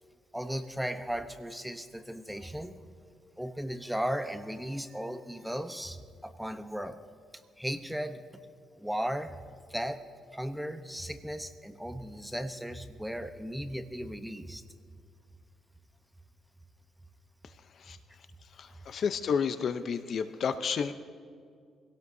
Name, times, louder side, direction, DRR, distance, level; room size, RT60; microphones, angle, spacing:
voice 1, 0.3-2.8 3.4-7.0 7.6-8.2 8.8-9.3 9.7-10.0 10.3-14.6, equal, 5° right, 9 dB, 0.9 m, -36 dB
voice 2, 18.6-20.9, left 6 dB, 55° left, 10 dB, 0.7 m, -31 dB
24.0 x 17.5 x 2.8 m, 2.2 s
cardioid pair, 90°, 0 cm